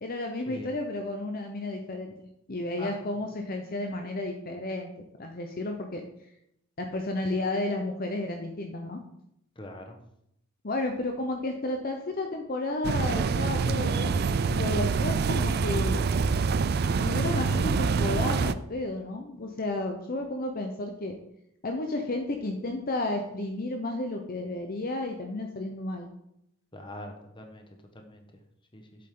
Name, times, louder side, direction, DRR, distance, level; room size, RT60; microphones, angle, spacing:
voice 1, 0.0-2.1 2.5-4.9 5.2-6.0 6.8-9.0 10.6-16.0 16.9-21.1 21.6-26.1, left 2 dB, 45° left, 3 dB, 0.8 m, -32 dB
voice 2, 9.6-10.0 26.7-27.6 27.9-28.2 28.7-28.8, left 1 dB, 25° left, 4 dB, 1.2 m, -42 dB
sound 1, 12.8-18.5, right 5 dB, 50° right, 0.4 m, -26 dB
8.2 x 7.7 x 3.8 m, 0.77 s
head